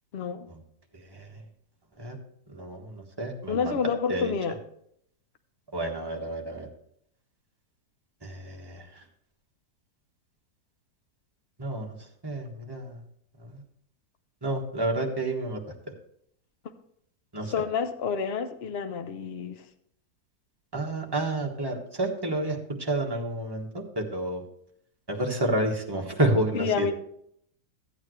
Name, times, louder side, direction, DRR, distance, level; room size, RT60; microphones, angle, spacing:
voice 1, 0.1-0.5 3.5-4.6 17.5-19.6 26.5-26.9, left 6 dB, 50° left, 8 dB, 0.8 m, -29 dB
voice 2, 1.1-1.4 2.0-2.2 2.5-3.7 4.1-4.3 5.7-6.7 8.2-9.0 11.6-11.9 12.2-13.0 13.5-13.6 14.4-15.6 17.3-17.5 20.7-24.4 25.1-26.9, right 1 dB, 15° right, 0 dB, 1.3 m, -30 dB
13.5 x 8.7 x 3.2 m, 0.70 s
omnidirectional pair, 1.8 m